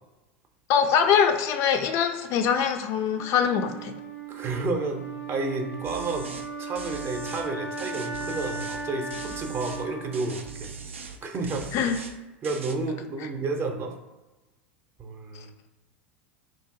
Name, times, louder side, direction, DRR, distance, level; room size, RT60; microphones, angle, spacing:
voice 1, 0.7-3.9 11.7-12.0, left 7 dB, 50° left, 7 dB, 0.3 m, -23 dB
Wind instrument woodwind instrument, 3.1-11.2, right 3 dB, 85° left, 0.7 m, -37 dB
voice 2, 4.3-6.3 6.6-10.7 11.2-11.7 12.4-13.9 15.0-15.5, right 3 dB, 35° right, 4 dB, 0.6 m, -31 dB
sound 1, 5.8-6.5 6.7-7.5 7.8-8.8 9.1-9.8 10.1-11.2 11.4-12.2 12.4-12.7, right 5 dB, 85° right, 0.3 m, -41 dB
2.7 x 2.6 x 3.6 m, 1.1 s
hypercardioid pair, 85°, 7 cm